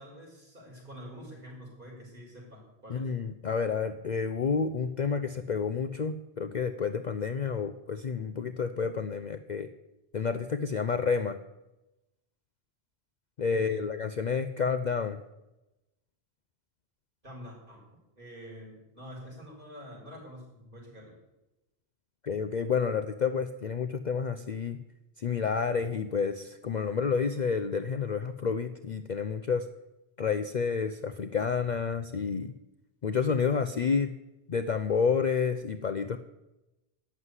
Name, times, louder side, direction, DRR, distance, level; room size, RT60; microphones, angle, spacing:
voice 1, 0.0-3.1 13.5-13.9 17.2-17.8 18.2-21.2, equal, 50° right, -2 dB, 5.3 m, -46 dB
voice 2, 2.9-9.7 10.1-11.4 13.4-15.2 22.2-24.8 25.2-29.7 30.2-32.5 33.0-34.1 34.5-36.2, left 5 dB, 50° left, 9 dB, 0.7 m, -29 dB
12.0 x 7.7 x 9.6 m, 0.97 s
omnidirectional pair, 1.1 m